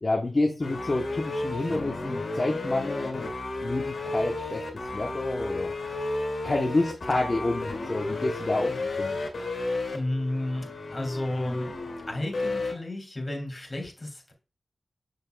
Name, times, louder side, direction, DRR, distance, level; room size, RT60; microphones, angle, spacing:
voice 1, 0.0-3.3 3.6-4.6 4.9-5.7 6.4-9.2 9.9-10.0, left 2 dB, 40° left, 1 dB, 0.9 m, -28 dB
sound 1, 0.6-12.7, left 2 dB, 80° left, 2.2 m, -32 dB
voice 2, 9.9-11.7 12.1-14.3, left 1 dB, 25° left, 1 dB, 2.7 m, -32 dB
6.9 x 6.4 x 2.3 m, 0.34 s
cardioid pair, 60°, 0 cm